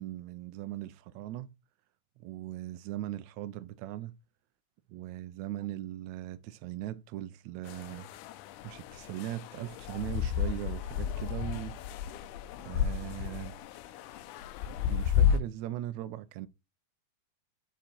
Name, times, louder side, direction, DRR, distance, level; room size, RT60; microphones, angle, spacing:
voice 1, 0.0-1.5 2.2-4.1 4.9-8.1 8.6-11.8 12.6-13.6 14.9-16.5, right 14 dB, 90° right, 1.6 m, -39 dB
sound 1, 7.7-15.4, left 8 dB, 75° left, 2.0 m, -32 dB
7.6 x 5.2 x 4.5 m
omnidirectional pair, 4.0 m